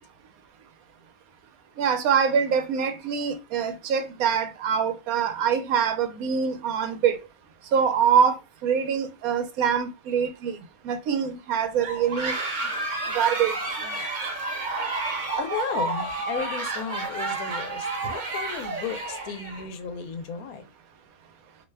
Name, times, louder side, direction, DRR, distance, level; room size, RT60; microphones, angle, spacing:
voice 1, 1.8-7.2 7.7-10.6 10.8-12.4 13.1-13.6 13.8-13.9, right 7 dB, 80° right, 1.1 m, -24 dB
sound 1, 11.8-19.6, right 3 dB, 40° right, 0.9 m, -30 dB
voice 2, 15.4-20.7, left 6 dB, 90° left, 1.1 m, -34 dB
2.8 x 2.2 x 3.2 m
omnidirectional pair, 1.5 m